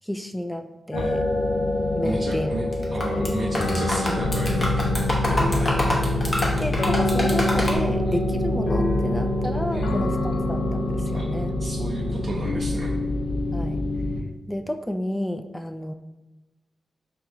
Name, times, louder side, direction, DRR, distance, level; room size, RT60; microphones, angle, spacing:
voice 1, 0.0-1.2 1.9-2.5 3.1-3.3 6.6-11.5 13.5-13.8 14.5-15.9, equal, 5° left, 6 dB, 0.3 m, -31 dB
sound 1, 0.9-14.2, left 1 dB, 85° left, 0.5 m, -25 dB
voice 2, 2.0-5.8 8.0-8.2 9.7-10.3 11.1-11.3 11.6-12.9, right 2 dB, 50° right, -3 dB, 0.5 m, -34 dB
sound 2, 2.7-3.3 3.5-7.8, left 1 dB, 35° left, 1.0 m, -26 dB
4.6 x 2.3 x 2.9 m, 1.1 s
supercardioid pair, 45°, 0 cm